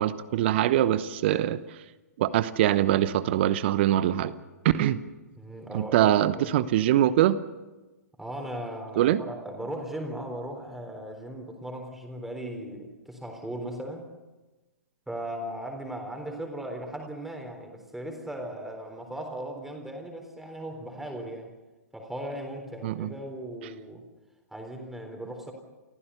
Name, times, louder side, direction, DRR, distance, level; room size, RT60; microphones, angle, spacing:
voice 1, 0.0-1.6 2.2-4.3 4.6-5.0 5.7-7.4 9.0-9.2 22.8-23.1, right 12 dB, 40° right, 0.9 m, -23 dB
voice 2, 5.4-6.1 6.4-6.5 8.2-14.1 15.1-21.5 21.9-24.0 24.5-25.5, right 1 dB, 5° right, 3.8 m, -37 dB
29.0 x 15.5 x 7.0 m
figure-of-eight pair, 115°, 9 cm